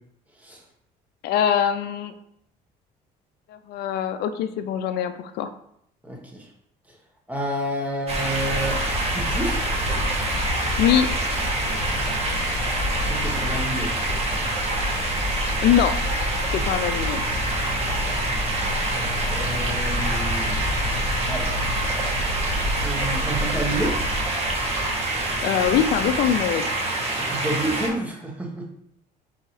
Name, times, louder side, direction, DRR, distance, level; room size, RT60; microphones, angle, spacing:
voice 1, 1.2-2.1 3.5-5.5 10.8-11.1 15.6-16.0 16.5-17.2 25.4-26.7, left 9 dB, 75° left, 10 dB, 0.4 m, -22 dB
voice 2, 6.0-6.5 7.3-8.8 9.0-9.6 12.9-13.9 16.5-16.6 17.4-17.7 19.0-20.6 21.3-21.6 22.8-24.0 27.2-28.7, right 1 dB, 10° right, -1 dB, 1.1 m, -30 dB
sound 1, 8.1-27.9, right 2 dB, 35° right, 1.2 m, -26 dB
sound 2, 8.3-24.3, left 1 dB, 55° left, 1.2 m, -29 dB
4.3 x 3.8 x 3.2 m, 0.72 s
cardioid pair, 110°, 17 cm